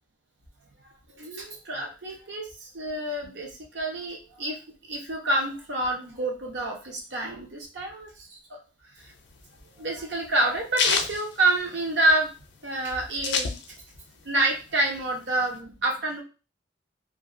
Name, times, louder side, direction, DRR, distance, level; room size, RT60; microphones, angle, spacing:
voice 1, 1.2-2.5 2.7-3.5 3.7-4.6 4.9-8.1 9.8-12.3 12.6-13.6 14.3-16.2, right 2 dB, 75° right, 0 dB, 0.9 m, -27 dB
sound 1, 9.0-12.2 12.5-12.6 12.8-14.1 14.4-15.6, left 5 dB, 70° left, 0.4 m, -28 dB
2.7 x 2.7 x 2.5 m, 0.33 s
head